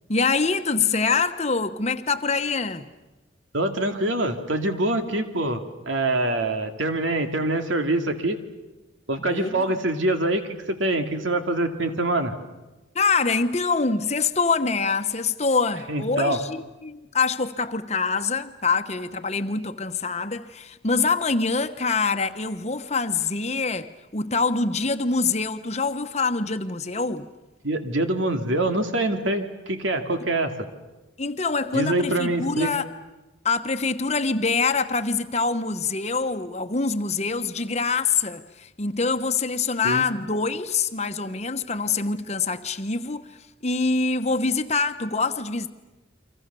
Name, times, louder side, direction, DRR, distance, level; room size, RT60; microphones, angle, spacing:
voice 1, 0.1-2.9 9.3-9.8 12.9-27.3 31.2-32.9 33.4-43.3 43.6-45.7, left 4 dB, 35° left, 1.1 m, -25 dB
voice 2, 3.5-8.4 9.1-12.3 15.9-16.4 27.6-30.7 31.7-32.7 39.8-40.1, right 1 dB, 85° right, 2.4 m, -25 dB
30.0 x 24.5 x 6.9 m
head